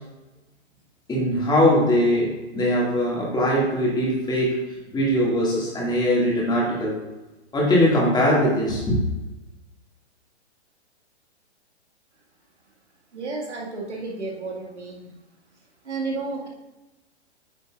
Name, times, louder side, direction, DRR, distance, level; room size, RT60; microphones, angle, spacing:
voice 1, 1.1-7.0 7.5-9.0, equal, 10° left, -4 dB, 2.2 m, -21 dB
voice 2, 13.1-15.1 15.8-16.5, right 3 dB, 85° right, -2 dB, 2.1 m, -32 dB
9.0 x 6.6 x 2.5 m, 1.1 s
hypercardioid pair, 125°, 34 cm